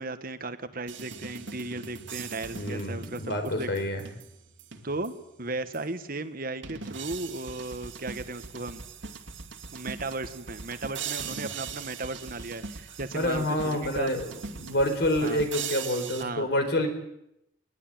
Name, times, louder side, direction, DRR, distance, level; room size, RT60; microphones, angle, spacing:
voice 1, 0.0-3.7 4.8-8.8 9.7-14.1 14.7-14.8 15.2-15.4 16.2-16.5, right 2 dB, 50° right, 10 dB, 1.5 m, -35 dB
sound 1, 0.9-5.3 5.7-5.8 6.6-16.2, right 6 dB, 80° right, 2.4 m, -40 dB
voice 2, 2.5-4.0 13.1-14.2 14.6-16.9, left 1 dB, 60° left, 6 dB, 4.5 m, -27 dB
21.0 x 20.5 x 9.2 m, 0.82 s
head